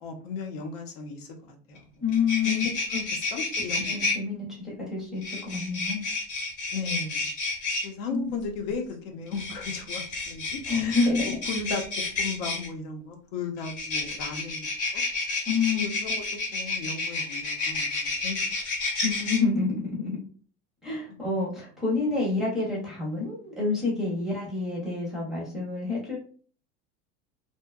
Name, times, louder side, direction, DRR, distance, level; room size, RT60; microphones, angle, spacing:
voice 1, 0.0-2.1 2.4-2.5 3.1-4.0 6.7-7.3 7.8-11.1 11.5-15.0 15.3-15.4 15.7-16.2 16.5-18.6 21.4-21.5, left 4 dB, 85° left, 2 dB, 0.7 m, -36 dB
sound 1, 1.8-1.9 2.1-4.2 5.2-7.9 9.3-12.7 13.6-19.4, left 3 dB, 35° left, 0.8 m, -30 dB
voice 2, 2.0-2.6 2.9-3.0 3.8-6.0 8.1-8.4 10.7-11.4 15.5-15.9 19.0-20.2 20.8-26.2, left 4 dB, ahead, -5 dB, 0.5 m, -28 dB
2.7 x 2.2 x 2.2 m, 0.44 s
cardioid pair, 175°, 30 cm